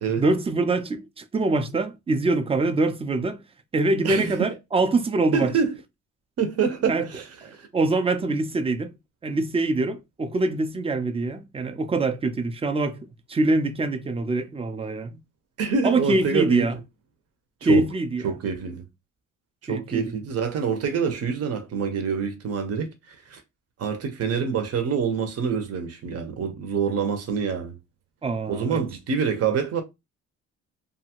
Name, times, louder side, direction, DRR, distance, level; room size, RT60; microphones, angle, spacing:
voice 1, 0.2-3.4 3.7-5.5 6.9-7.1 7.4-8.9 9.2-15.2 15.8-16.8 17.6-18.2 19.7-20.0 28.2-28.8, right 2 dB, 20° right, 0.4 m, -24 dB
voice 2, 5.3-5.7 6.4-7.2 7.5-7.7 15.6-16.7 17.7-17.8 18.2-18.8 19.7-23.4 23.8-27.7 28.5-29.8, right 6 dB, 55° right, 0.8 m, -26 dB
2.7 x 2.4 x 2.9 m
cardioid pair, 90°, 30 cm